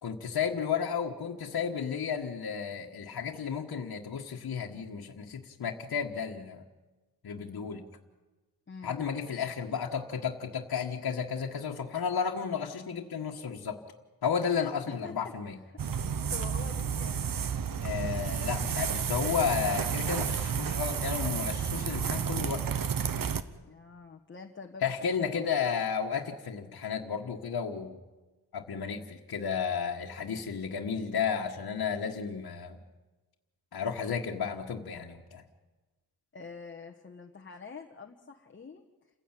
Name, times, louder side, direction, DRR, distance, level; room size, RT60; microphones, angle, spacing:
voice 1, 0.0-6.6 7.2-7.8 8.8-13.8 14.2-15.6 17.8-22.6 24.8-28.0 28.5-32.8 33.7-35.4, left 6 dB, 65° left, 0 dB, 1.6 m, -33 dB
voice 2, 8.7-9.1 14.9-15.8 16.3-17.2 23.6-24.8 25.1-25.5 32.0-32.2 36.3-38.8, left 5 dB, 30° left, 2 dB, 1.2 m, -46 dB
sound 1, 15.8-23.4, right 7 dB, 60° right, 1.1 m, -31 dB
28.5 x 15.5 x 9.0 m, 1.2 s
wide cardioid pair, 150°, 39 cm